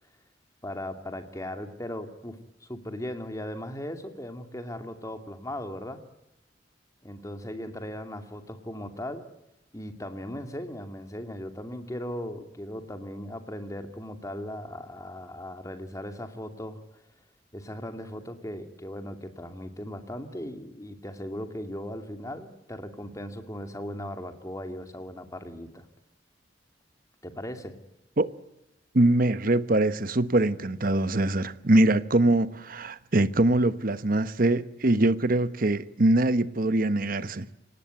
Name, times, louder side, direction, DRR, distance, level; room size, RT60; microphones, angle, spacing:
voice 1, 0.6-6.0 7.0-9.3 9.7-16.8 17.5-25.9 27.2-27.8, left 1 dB, 20° left, 2.6 m, -38 dB
voice 2, 28.9-37.5, right 1 dB, 50° right, 1.1 m, -23 dB
26.5 x 18.5 x 9.4 m
head